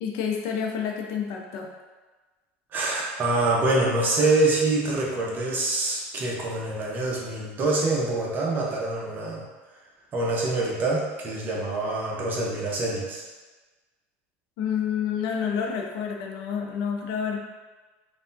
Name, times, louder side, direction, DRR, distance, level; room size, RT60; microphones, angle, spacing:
voice 1, 0.0-1.7 14.6-17.4, left 7 dB, 70° left, 1 dB, 0.5 m, -29 dB
voice 2, 2.7-9.4 10.1-13.2, right 2 dB, 30° right, -3 dB, 0.7 m, -25 dB
3.3 x 2.2 x 2.6 m, 1.3 s
supercardioid pair, 130°, 6 cm